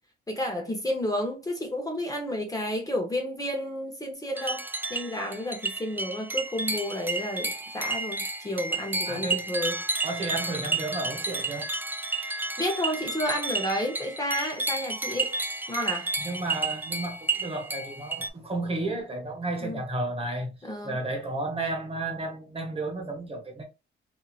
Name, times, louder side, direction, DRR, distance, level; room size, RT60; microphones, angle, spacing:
voice 1, 0.3-9.8 12.6-15.4 15.7-16.1 19.6-19.8 20.6-20.9, left 1 dB, 15° left, 0.9 m, -31 dB
sound 1, 4.4-18.3, right 3 dB, 10° right, 0.3 m, -31 dB
voice 2, 9.1-9.5 10.0-11.7 16.2-20.6 20.8-23.6, right 2 dB, 30° right, 1.2 m, -32 dB
2.8 x 2.7 x 2.4 m
cardioid pair, 90°, 20 cm